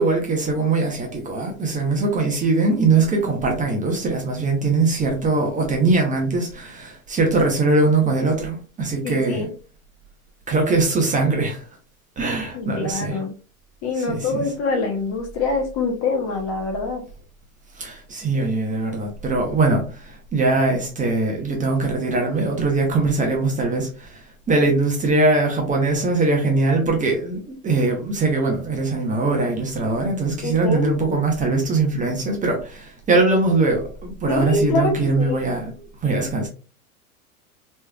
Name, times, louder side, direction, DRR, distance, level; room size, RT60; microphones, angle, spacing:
voice 1, 0.0-9.5 10.5-11.6 12.2-13.2 14.0-14.4 17.8-35.7 36.0-36.5, right 3 dB, 20° right, 0.8 m, -21 dB
voice 2, 9.0-9.5 12.5-13.3 13.8-17.0 30.4-30.9 34.3-35.4, left 3 dB, 35° left, 0.9 m, -25 dB
3.2 x 3.1 x 2.3 m
hypercardioid pair, 100°, 44 cm